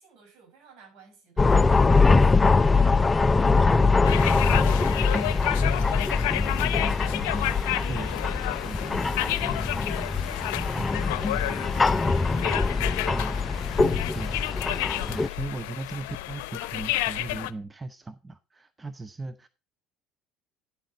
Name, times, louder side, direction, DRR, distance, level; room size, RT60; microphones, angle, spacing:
voice 1, 0.0-8.1 8.6-14.2, right 5 dB, 60° right, 6.1 m, -56 dB
sound 1, 1.4-15.3, left 3 dB, 20° left, 0.5 m, -23 dB
sound 2, 4.0-17.5, left 16 dB, 75° left, 0.6 m, -31 dB
voice 2, 15.1-19.5, right 3 dB, 20° right, 0.8 m, -37 dB
10.5 x 7.8 x 4.1 m
hypercardioid pair, 75°, 0 cm